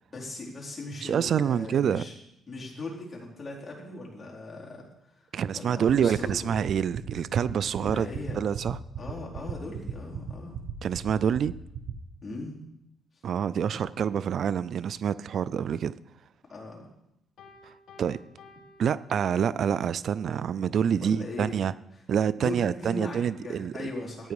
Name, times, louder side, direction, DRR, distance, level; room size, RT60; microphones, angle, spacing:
voice 1, 0.1-2.1 2.5-4.9 5.1-5.2 5.5-6.5 7.8-8.4 9.0-10.6 12.2-12.6 16.5-16.9 21.0-21.6 22.4-24.3, left 2 dB, 25° left, -4 dB, 4.4 m, -38 dB
voice 2, 1.0-2.0 5.3-8.1 8.4-8.8 10.8-11.5 13.2-15.9 17.6-17.7 18.0-18.2 18.8-21.7 22.1-23.9 24.2-24.3, right 8 dB, 60° right, 18 dB, 0.4 m, -27 dB
sound 1, 5.9-11.9, right 10 dB, 80° right, 1.1 m, -34 dB
Piano, 17.4-19.8, left 3 dB, 70° left, 2.4 m, -54 dB
14.5 x 9.3 x 4.8 m, 0.85 s
cardioid pair, 90°, 0 cm